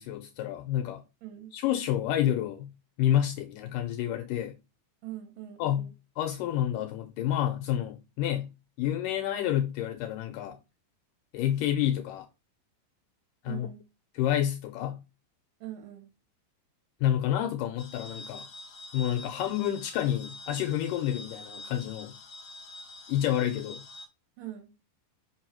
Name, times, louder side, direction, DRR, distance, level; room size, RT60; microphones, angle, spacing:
voice 1, 0.0-1.0 1.5-2.7 3.0-4.5 5.6-5.9 6.2-8.5 8.8-10.6 11.3-12.3 13.4-13.7 14.2-15.0 17.0-18.5 18.9-22.1 23.1-23.8, left 11 dB, 80° left, 2.1 m, -29 dB
voice 2, 1.2-1.5 5.0-5.9 13.5-13.8 15.6-16.1 24.4-24.7, right 12 dB, 75° right, 2.7 m, -42 dB
sound 1, 17.8-24.1, left 2 dB, 50° left, 1.8 m, -46 dB
5.4 x 5.3 x 4.4 m
omnidirectional pair, 4.1 m